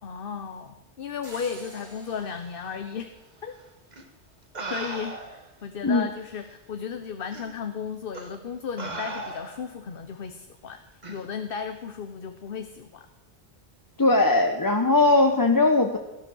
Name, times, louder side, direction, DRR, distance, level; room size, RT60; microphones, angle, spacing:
voice 1, 0.0-3.1 3.4-3.6 4.7-10.8 11.1-13.1, left 6 dB, 55° left, 8 dB, 1.0 m, -35 dB
sound 1, 1.2-4.1, right 2 dB, 65° right, 3.9 m, -49 dB
sound 2, 3.9-4.0 4.5-5.5 6.4-6.5 7.3-7.5 8.1-8.4 8.8-9.7 11.0-11.2, right 2 dB, 40° right, 1.6 m, -36 dB
voice 2, 14.0-16.0, left 2 dB, 20° left, 4 dB, 0.8 m, -20 dB
18.5 x 12.0 x 6.3 m, 1.0 s
omnidirectional pair, 1.2 m